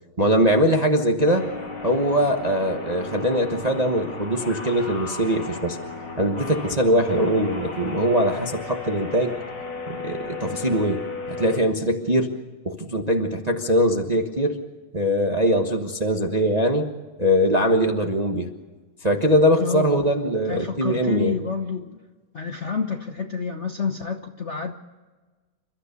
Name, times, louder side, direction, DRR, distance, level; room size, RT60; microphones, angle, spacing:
voice 1, 0.2-1.5 1.8-5.8 6.2-9.3 9.9-11.0 11.3-12.4 12.6-14.6 14.9-16.9 17.2-18.5 19.0-21.4, equal, 25° right, 3 dB, 1.1 m, -22 dB
sound 1, 1.3-11.6, left 3 dB, 60° left, 3.7 m, -35 dB
voice 2, 19.6-22.0 22.3-24.7, left 5 dB, 45° left, 4 dB, 1.1 m, -29 dB
29.0 x 13.5 x 6.8 m, 1.3 s
omnidirectional pair, 2.2 m